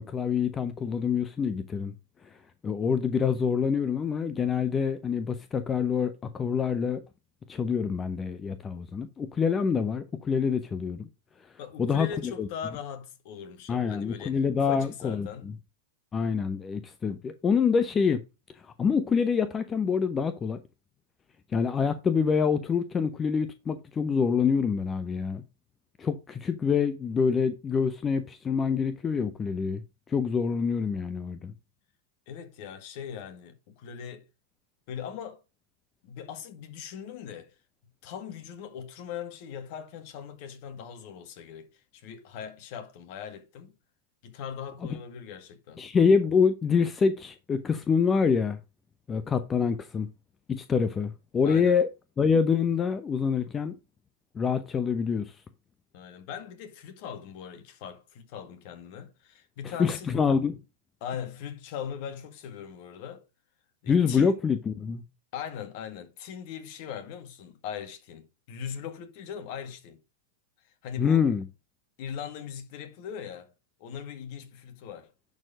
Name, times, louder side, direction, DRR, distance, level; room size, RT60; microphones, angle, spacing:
voice 1, 0.0-1.9 2.2-2.4 2.6-7.0 7.5-11.1 11.8-12.5 13.7-15.5 16.1-18.2 18.6-20.6 21.5-25.4 26.0-29.8 30.1-31.5 45.8-48.6 49.1-50.1 50.5-51.9 52.2-53.7 54.3-55.4 59.8-60.6 63.9-65.0 71.0-71.4, left 6 dB, 20° left, 0.8 m, -26 dB
voice 2, 11.6-15.5 32.3-34.2 34.9-35.4 36.0-37.5 38.0-43.7 44.2-45.8 51.4-51.8 55.9-60.1 61.0-63.2 63.8-64.4 65.3-70.0 70.8-71.3 72.0-73.5 73.8-75.1, left 8 dB, 50° left, 2.0 m, -40 dB
10.5 x 4.5 x 5.1 m
hypercardioid pair, 110°, 0 cm